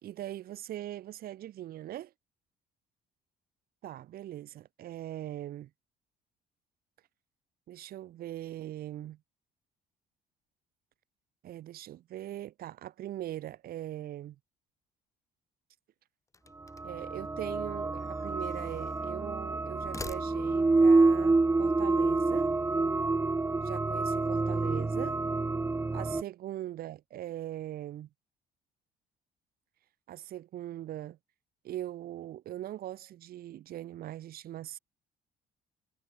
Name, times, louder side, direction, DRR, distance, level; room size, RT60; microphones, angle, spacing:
voice 1, 0.0-2.1 3.8-5.7 7.7-9.2 11.4-14.4 16.8-22.5 23.6-25.2 25.9-28.1 30.1-31.2 31.6-34.8, right 13 dB, 65° right, 1.6 m, -41 dB
sound 1, 16.3-17.1 18.0-19.1 19.7-20.8, left 3 dB, 20° left, 1.6 m, -46 dB
sound 2, 16.7-26.2, right 3 dB, 15° right, 0.9 m, -27 dB
cardioid pair, 110°, 17 cm